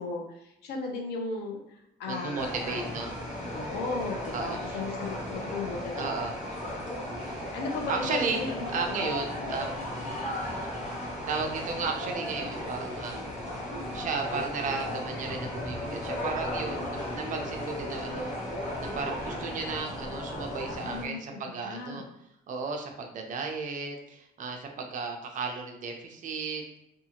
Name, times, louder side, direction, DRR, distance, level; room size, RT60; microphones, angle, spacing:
voice 1, 0.0-1.6 2.0-2.8 3.5-6.3 6.7-6.8 7.5-8.7 9.0-9.5 20.7-21.2 21.6-22.0, left 3 dB, 75° left, 1 dB, 0.7 m, -36 dB
voice 2, 2.0-3.1 4.3-4.8 6.0-6.3 7.9-8.4 8.7-9.8 11.3-13.3 13.9-18.3 18.8-22.0 22.5-26.8, right 4 dB, 50° right, 3 dB, 0.5 m, -34 dB
sound 1, 2.1-19.8, equal, 5° right, 0.7 m, -46 dB
sound 2, 2.4-21.0, left 1 dB, 45° left, 1.0 m, -36 dB
2.6 x 2.4 x 2.8 m, 0.83 s
cardioid pair, 110°, 17 cm